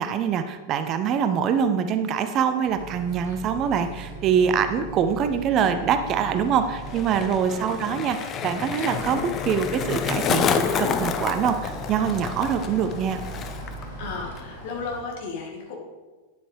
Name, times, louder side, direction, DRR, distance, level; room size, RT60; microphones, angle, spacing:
voice 1, 0.0-13.2, right 7 dB, 35° right, 9 dB, 0.5 m, -24 dB
sound 1, 2.6-15.0, left 1 dB, 75° left, 2.5 m, -44 dB
sound 2, 2.8-14.4, right 3 dB, 50° right, 1.1 m, -40 dB
Skateboard, 6.3-13.9 14.1-14.6, left 6 dB, 30° left, 0.6 m, -29 dB
voice 2, 14.0-15.8, left 4 dB, 50° left, 0 dB, 1.9 m, -34 dB
9.9 x 7.8 x 3.2 m, 1.3 s
figure-of-eight pair, 90°, 0 cm